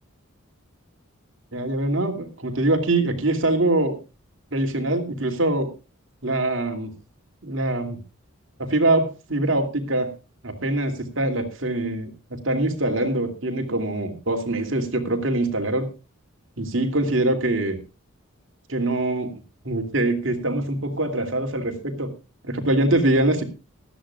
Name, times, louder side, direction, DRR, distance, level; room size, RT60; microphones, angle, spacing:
voice 1, 1.5-4.0 4.5-5.7 6.2-6.9 7.4-8.0 8.6-10.1 10.4-15.9 16.6-17.8 18.7-19.3 19.6-22.1 22.4-23.4, right 2 dB, 60° right, 4 dB, 2.7 m, -23 dB
19.0 x 13.5 x 2.4 m, 0.30 s
head